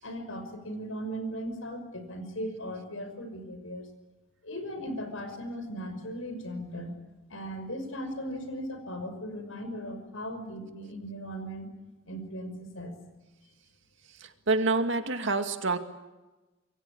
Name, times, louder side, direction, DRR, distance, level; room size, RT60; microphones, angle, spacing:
voice 1, 0.0-3.9 4.4-7.0 7.3-11.7 12.1-13.0, equal, 85° left, 8 dB, 5.9 m, -37 dB
voice 2, 14.2-15.8, right 3 dB, 65° right, 6 dB, 2.3 m, -27 dB
27.0 x 22.5 x 8.8 m, 1.1 s
head